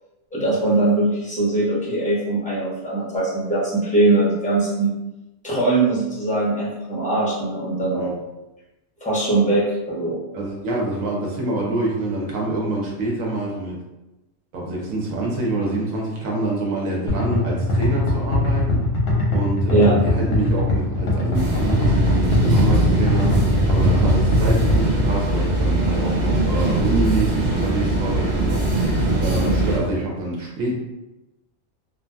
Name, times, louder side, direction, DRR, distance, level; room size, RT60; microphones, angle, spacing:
voice 1, 0.3-5.0 5.4-8.1 9.0-10.2 19.7-20.0 29.4-29.5, right 2 dB, 10° left, -8 dB, 0.6 m, -21 dB
voice 2, 10.3-13.8 14.5-18.8 19.3-28.6 29.2-30.8, right 2 dB, 90° right, -2 dB, 1.1 m, -26 dB
sound 1, 17.1-25.0, left 1 dB, 55° left, 0.9 m, -21 dB
sound 2, 21.3-29.8, right 2 dB, 45° right, 0.6 m, -21 dB
2.6 x 2.5 x 2.2 m, 0.98 s
omnidirectional pair, 1.4 m